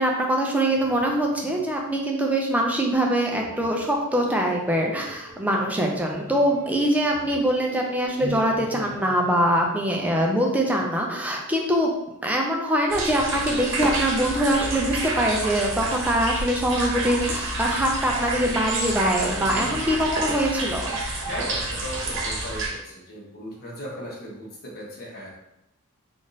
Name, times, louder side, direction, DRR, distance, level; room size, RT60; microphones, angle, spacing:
voice 1, 0.0-11.9 12.2-21.0, right 1 dB, 5° right, 0 dB, 0.5 m, -23 dB
sound 1, 0.7-9.7, left 2 dB, 15° left, 1.0 m, -43 dB
voice 2, 4.9-5.3 15.7-15.9 19.4-20.1 21.2-25.3, equal, 45° left, -5 dB, 1.1 m, -37 dB
sound 2, 12.9-22.7, right 2 dB, 55° right, 0.9 m, -29 dB
3.5 x 2.5 x 3.9 m, 0.86 s
head